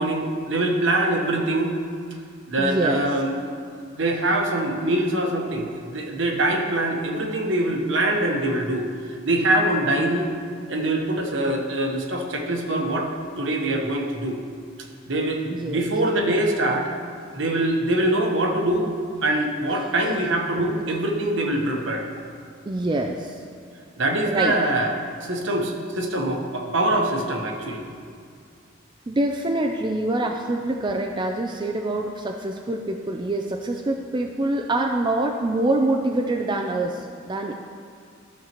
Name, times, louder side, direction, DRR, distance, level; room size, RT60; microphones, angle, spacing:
voice 1, 0.0-1.8 2.5-8.9 9.2-10.3 10.7-14.4 15.1-16.9 17.3-18.9 19.2-22.1 24.0-24.9 25.2-27.9, right 1 dB, 65° right, 1 dB, 1.1 m, -24 dB
voice 2, 2.6-3.0 15.5-15.9 19.7-20.2 22.7-23.4 24.2-24.6 29.1-37.5, right 2 dB, 25° right, 2 dB, 0.3 m, -25 dB
14.0 x 6.5 x 3.0 m, 2.2 s
head